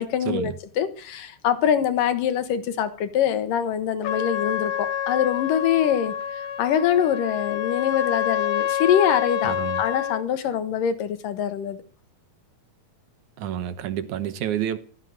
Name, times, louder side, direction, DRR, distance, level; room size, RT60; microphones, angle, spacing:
voice 1, 0.0-6.1 6.6-11.8, left 9 dB, 85° left, 3.1 m, -24 dB
Trumpet, 4.0-10.2, left 10 dB, 65° left, 1.3 m, -27 dB
voice 2, 9.4-9.8 13.4-14.8, right 10 dB, 70° right, 2.5 m, -29 dB
15.0 x 14.0 x 6.6 m
omnidirectional pair, 3.8 m